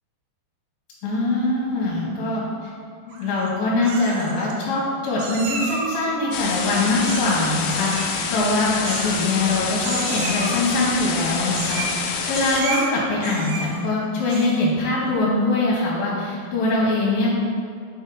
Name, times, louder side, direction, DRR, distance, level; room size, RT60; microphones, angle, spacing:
voice 1, 1.0-2.7 3.2-17.3, left 2 dB, 70° left, -6 dB, 2.5 m, -23 dB
Meow, 3.1-3.5 3.8-4.5 5.2-6.0 7.0-7.4 7.7-8.1 8.8-9.5 9.8-10.6 11.5-12.0 12.3-12.9 13.2-13.8 14.2-14.7, right 3 dB, 85° right, 3.1 m, -31 dB
sound 1, 6.3-12.6, left 5 dB, 85° left, 1.9 m, -27 dB
7.0 x 3.5 x 5.3 m, 2.3 s
omnidirectional pair, 4.7 m